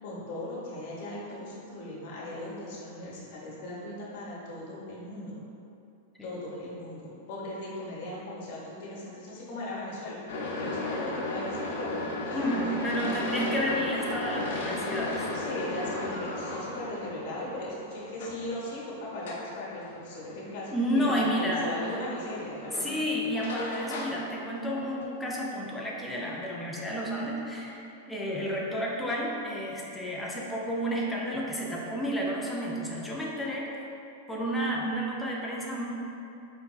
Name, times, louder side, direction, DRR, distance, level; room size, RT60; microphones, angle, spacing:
voice 1, 0.0-5.4 6.2-10.2 10.6-13.1 15.3-23.0, left 1 dB, 45° left, -6 dB, 0.9 m, -38 dB
sound 1, 10.3-25.0, left 2 dB, 75° left, 0.5 m, -36 dB
voice 2, 12.3-15.3 20.7-21.7 22.8-27.8 28.1-33.7 34.3-35.9, equal, 5° left, -4 dB, 0.4 m, -31 dB
3.9 x 3.3 x 2.4 m, 2.7 s
supercardioid pair, 175°, 0 cm